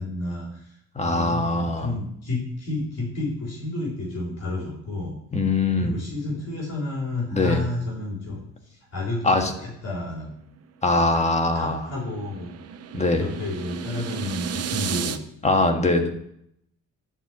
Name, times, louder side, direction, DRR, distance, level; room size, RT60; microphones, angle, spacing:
voice 1, 0.0-5.2 5.8-10.4 11.1-12.5 13.1-15.2, left 2 dB, 55° left, -3 dB, 3.7 m, -31 dB
voice 2, 0.9-1.9 5.3-5.9 7.3-7.6 9.2-9.5 10.8-11.8 12.9-13.3 15.4-16.1, left 2 dB, 20° left, 4 dB, 1.6 m, -22 dB
sound 1, 10.9-15.2, right 7 dB, 55° right, 0.8 m, -33 dB
11.5 x 4.5 x 7.4 m, 0.73 s
cardioid pair, 90°, 30 cm